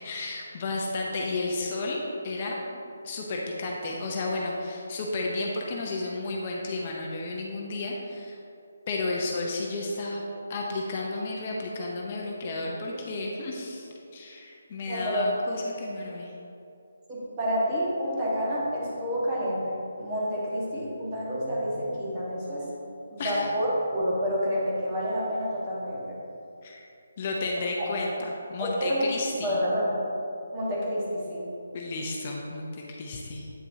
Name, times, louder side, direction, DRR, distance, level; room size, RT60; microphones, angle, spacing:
voice 1, 0.0-2.6 3.0-8.4 8.9-10.2 10.5-16.3 23.2-23.5 26.6-26.8 27.2-29.6 31.7-33.5, left 2 dB, 35° left, -1 dB, 0.7 m, -32 dB
voice 2, 14.8-15.5 17.1-26.2 28.6-30.0 30.5-31.5, equal, 25° right, -6 dB, 1.5 m, -29 dB
8.5 x 5.3 x 2.8 m, 2.7 s
hypercardioid pair, 165°, 0 cm